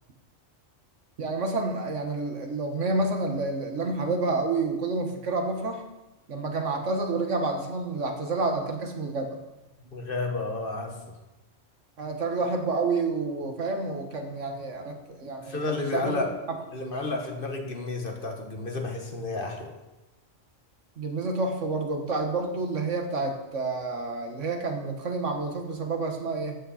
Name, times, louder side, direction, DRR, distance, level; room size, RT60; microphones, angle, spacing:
voice 1, 1.2-5.8 6.3-9.4 12.0-16.3 21.0-26.6, right 3 dB, 80° right, 4 dB, 1.8 m, -29 dB
voice 2, 9.9-11.0 15.4-16.3 16.7-19.7, left 3 dB, 50° left, 2 dB, 1.7 m, -31 dB
13.5 x 8.7 x 4.3 m, 1.0 s
omnidirectional pair, 1.2 m